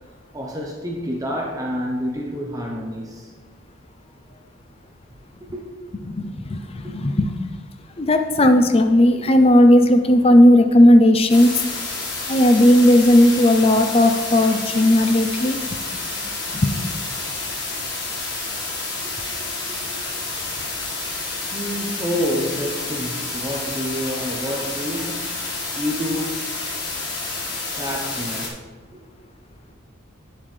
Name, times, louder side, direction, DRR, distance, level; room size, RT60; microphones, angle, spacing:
voice 1, 0.3-3.3 4.3-4.4 5.4-5.6 6.8-7.0 9.2-9.3 17.2-17.3 19.0-20.2 21.5-25.4 25.8-26.4 27.8-28.6, equal, 15° right, -1 dB, 0.8 m, -29 dB
voice 2, 6.0-7.3 8.0-11.5 12.3-15.8 16.5-16.9, left 1 dB, 30° left, 7 dB, 0.5 m, -15 dB
sound 1, 11.3-28.5, left 3 dB, 50° left, 1.8 m, -29 dB
9.1 x 7.3 x 3.3 m, 1.4 s
head